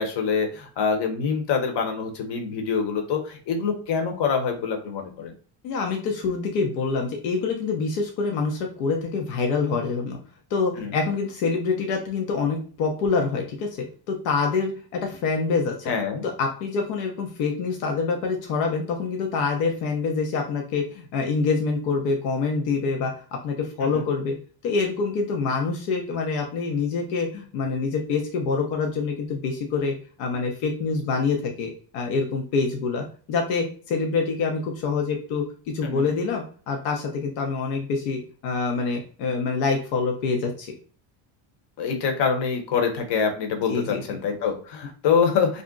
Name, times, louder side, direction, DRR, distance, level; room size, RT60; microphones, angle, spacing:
voice 1, 0.0-5.3 10.8-11.0 15.9-16.2 23.8-24.1 35.8-36.0 41.8-45.6, left 6 dB, 55° left, 3 dB, 0.9 m, -25 dB
voice 2, 5.6-10.2 10.5-15.9 16.2-24.4 24.6-35.4 35.7-40.7 43.7-44.2, left 4 dB, 85° left, 2 dB, 0.8 m, -26 dB
2.5 x 2.1 x 3.7 m, 0.41 s
supercardioid pair, 85°, 49 cm